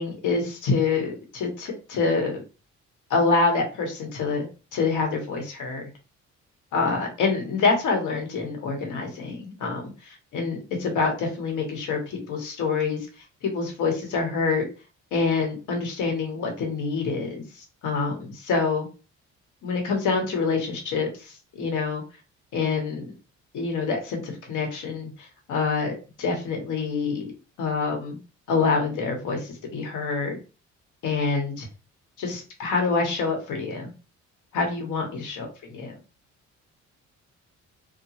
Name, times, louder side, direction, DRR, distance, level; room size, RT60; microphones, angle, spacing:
voice 1, 0.0-2.4 3.1-4.5 4.7-5.8 6.7-13.0 13.4-14.7 15.1-18.9 19.6-22.0 22.5-23.1 23.5-27.3 27.6-28.2 28.5-30.4 31.0-31.6 32.2-33.9 34.5-35.9, left 4 dB, 85° left, 2 dB, 1.1 m, -26 dB
2.8 x 2.2 x 2.9 m, 0.32 s
cardioid pair, 90°, 30 cm